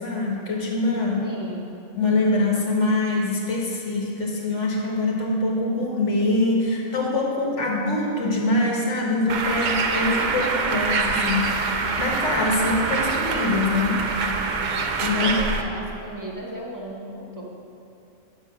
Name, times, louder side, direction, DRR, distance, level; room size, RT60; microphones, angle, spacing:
voice 1, 0.0-1.2 1.9-14.0 15.0-15.3, left 2 dB, 75° left, -2 dB, 1.8 m, -24 dB
voice 2, 1.2-1.6 15.1-17.5, right 1 dB, 15° right, -2 dB, 1.2 m, -35 dB
Bird, 9.3-15.6, right 4 dB, 50° right, 0.6 m, -25 dB
8.2 x 6.9 x 6.1 m, 2.7 s
omnidirectional pair, 1.2 m